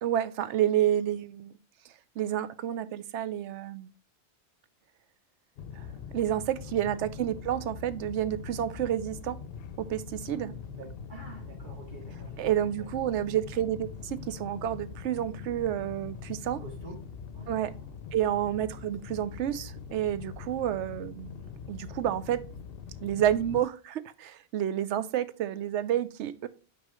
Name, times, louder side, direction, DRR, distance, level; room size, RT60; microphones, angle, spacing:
voice 1, 0.0-1.5 1.8-3.9 5.8-5.9 6.1-9.4 9.8-10.5 12.4-16.6 17.5-17.7 18.1-21.4 21.7-22.5 23.0-26.5, right 11 dB, 85° right, 15 dB, 0.9 m, -30 dB
sound 1, 5.6-23.6, left 6 dB, 65° left, 0.7 m, -43 dB
voice 2, 10.4-12.5 12.8-12.9 16.6-17.0 17.3-17.9, right 1 dB, 45° right, -2 dB, 2.7 m, -47 dB
6.3 x 4.5 x 3.7 m, 0.36 s
omnidirectional pair, 1.2 m